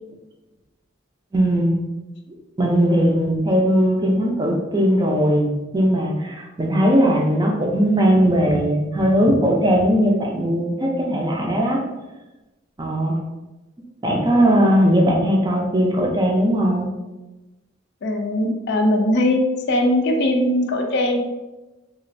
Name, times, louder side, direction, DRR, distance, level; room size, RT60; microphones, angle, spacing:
voice 1, 1.3-1.8 2.6-11.8 12.8-13.2 14.0-16.9, equal, 20° right, -1 dB, 0.5 m, -19 dB
voice 2, 18.0-19.4 19.7-21.2, left 1 dB, 60° left, 3 dB, 0.4 m, -20 dB
3.0 x 2.4 x 2.5 m, 1.1 s
head